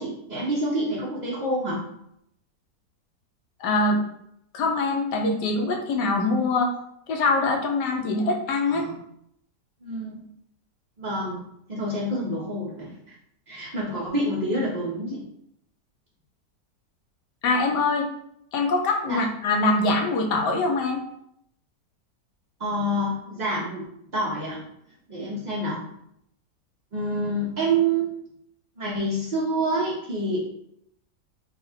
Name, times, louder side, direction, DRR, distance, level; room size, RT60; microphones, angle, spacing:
voice 1, 0.0-1.8 8.7-8.9 9.8-10.2 11.0-11.4 11.7-13.1 13.5-15.3 19.1-19.2 22.6-23.8 24.1-24.6 25.1-25.9 26.9-28.1 28.8-30.4, right 1 dB, 50° right, -6 dB, 0.5 m, -27 dB
voice 2, 3.6-4.0 4.5-6.7 7.1-8.9 17.4-18.1 18.5-21.0, left 3 dB, 80° left, 2 dB, 1.3 m, -23 dB
3.8 x 2.4 x 4.3 m, 0.74 s
omnidirectional pair, 1.8 m